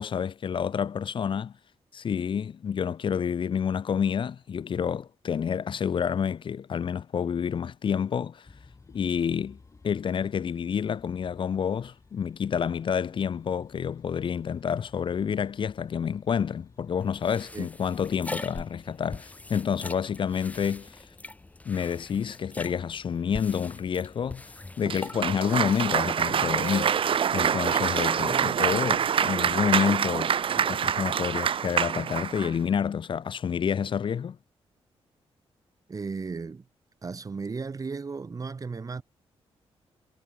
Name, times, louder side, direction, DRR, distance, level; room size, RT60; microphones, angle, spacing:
voice 1, 0.0-1.5 1.9-8.5 8.9-9.6 9.8-21.1 21.6-27.0 27.3-30.3 30.6-34.4, left 7 dB, 50° left, 1.0 m, -29 dB
sound 1, 8.4-25.5, left 4 dB, 30° left, 7.1 m, -57 dB
sound 2, 17.0-29.1, left 2 dB, 15° left, 1.2 m, -44 dB
Cheering / Applause, 24.9-32.5, right 8 dB, 55° right, 1.0 m, -26 dB
voice 2, 35.9-36.7 37.0-39.0, right 4 dB, 35° right, 4.5 m, -35 dB
cardioid pair, 110°, 11 cm